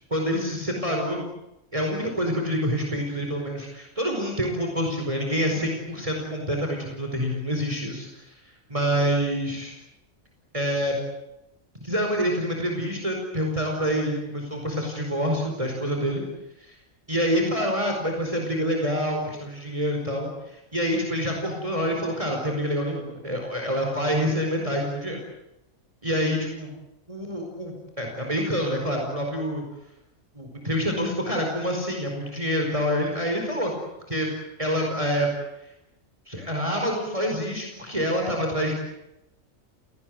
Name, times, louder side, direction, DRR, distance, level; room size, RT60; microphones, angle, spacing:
voice 1, 0.1-1.2 1.7-8.3 8.7-9.7 10.5-11.0 11.8-16.2 16.6-16.7 17.1-25.2 26.0-26.7 27.1-29.6 30.3-33.7 34.1-34.3 34.6-35.3 36.3-38.8, equal, 25° right, 1 dB, 4.9 m, -27 dB
29.5 x 19.0 x 9.4 m, 0.89 s
omnidirectional pair, 1.4 m